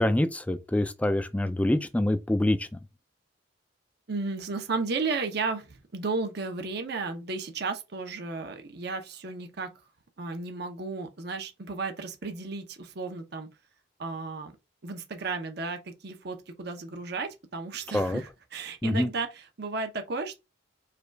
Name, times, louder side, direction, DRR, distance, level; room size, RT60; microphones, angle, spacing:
voice 1, 0.0-2.7 17.9-18.2 18.8-19.1, left 1 dB, 10° left, 0.3 m, -25 dB
voice 2, 4.1-9.7 10.2-13.5 14.0-14.5 14.8-20.4, right 4 dB, 60° right, 0.8 m, -34 dB
4.9 x 2.4 x 4.5 m
head